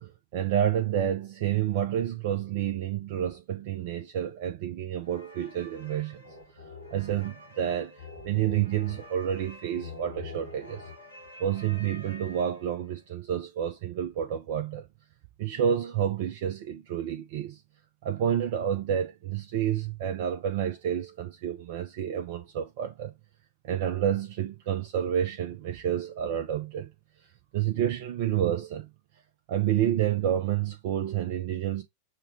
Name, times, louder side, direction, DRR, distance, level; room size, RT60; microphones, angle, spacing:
voice 1, 0.0-6.2 6.9-10.9 11.4-14.8 15.4-17.6 18.0-23.1 23.6-26.9 27.2-28.9 29.5-31.8, right 10 dB, 50° right, 0.5 m, -29 dB
sound 1, 5.0-12.9, left 3 dB, 85° left, 1.6 m, -46 dB
6.5 x 2.2 x 3.4 m
figure-of-eight pair, 90°, 0 cm